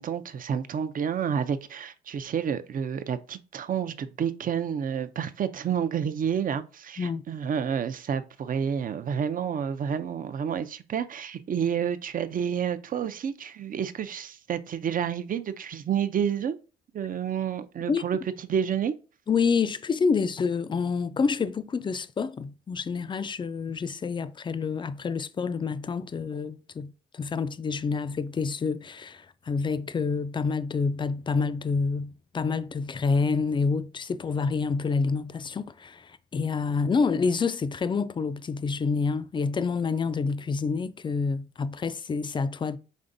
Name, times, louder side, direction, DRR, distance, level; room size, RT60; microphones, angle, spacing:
voice 1, 0.0-16.6 16.9-18.9, right 8 dB, 45° right, 0.5 m, -29 dB
voice 2, 19.3-42.8, left 5 dB, 25° left, 0.4 m, -28 dB
5.3 x 3.4 x 2.6 m
cardioid pair, 90°, 20 cm